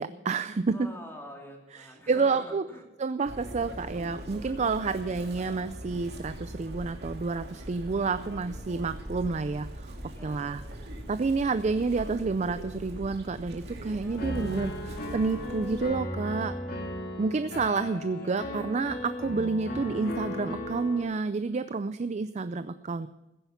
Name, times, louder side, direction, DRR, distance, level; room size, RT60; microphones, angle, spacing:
voice 1, 0.0-0.8 2.1-2.6 3.0-10.0 10.2-10.6 11.1-16.5 17.2-23.1, right 4 dB, 40° right, 12 dB, 0.4 m, -29 dB
voice 2, 0.7-2.9 10.1-10.6 13.9-15.1 17.8-18.8, equal, 15° left, 0 dB, 2.7 m, -48 dB
Chirp tweet, 3.3-15.8, right 1 dB, 65° right, 2.2 m, -41 dB
sound 1, 11.8-17.2, equal, 90° right, 1.9 m, -55 dB
Piano, 14.2-21.0, left 1 dB, 55° left, 2.2 m, -36 dB
15.5 x 10.0 x 5.7 m, 1.0 s
head